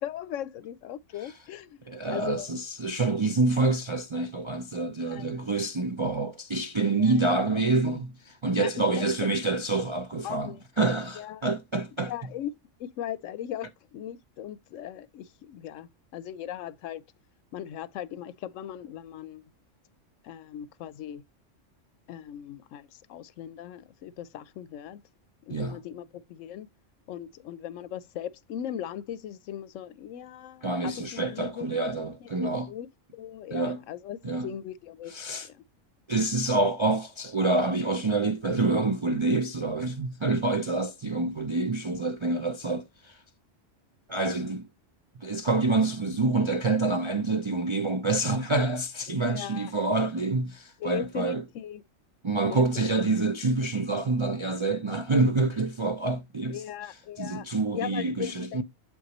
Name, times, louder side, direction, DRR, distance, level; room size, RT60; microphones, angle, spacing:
voice 1, 0.0-2.5 5.0-5.4 7.0-7.2 8.6-8.7 9.0-9.1 10.2-10.6 11.2-11.4 12.1-12.5 12.8-17.0 17.5-19.4 20.2-21.2 22.1-25.0 25.4-26.7 27.1-32.9 33.1-35.1 35.4-35.6 49.1-49.7 50.8-51.8 52.5-52.9 56.5-57.5 57.7-58.6, left 10 dB, 80° left, 0.9 m, -38 dB
voice 2, 1.9-12.1 25.5-25.8 30.6-32.7 33.5-33.8 34.2-34.5 35.1-35.5 36.1-43.2 44.1-44.7 45.2-51.4 52.2-56.6 57.2-58.6, right 3 dB, 45° right, 0.4 m, -27 dB
8.0 x 5.1 x 2.9 m
omnidirectional pair, 1.3 m